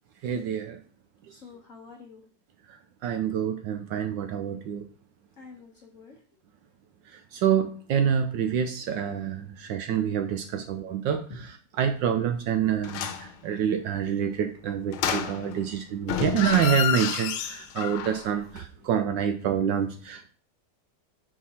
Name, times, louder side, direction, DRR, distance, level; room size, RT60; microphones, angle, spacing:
voice 1, 0.2-0.8 2.7-2.8 3.0-4.8 7.1-11.2 11.8-20.3, right 8 dB, 75° right, 7 dB, 1.1 m, -27 dB
voice 2, 1.3-2.3 5.4-6.2 10.5-10.7 11.1-11.4 18.7-18.9, left 4 dB, 50° left, 1 dB, 1.1 m, -48 dB
sound 1, 12.8-13.3 14.9-15.7 16.0-18.3 18.6-18.7, left 9 dB, 90° left, 1.6 m, -30 dB
5.6 x 4.7 x 4.1 m, 0.42 s
omnidirectional pair, 2.3 m